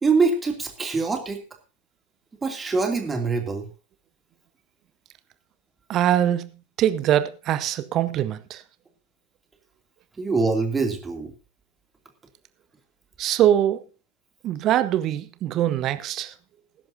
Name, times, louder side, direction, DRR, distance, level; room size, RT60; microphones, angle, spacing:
voice 1, 0.0-1.4 2.4-3.7 10.2-11.3, right 4 dB, 15° right, 2.8 m, -24 dB
voice 2, 5.9-8.6 13.2-13.8 14.4-16.3, right 11 dB, 35° right, 1.0 m, -23 dB
19.5 x 10.5 x 2.8 m
figure-of-eight pair, 90°, 0 cm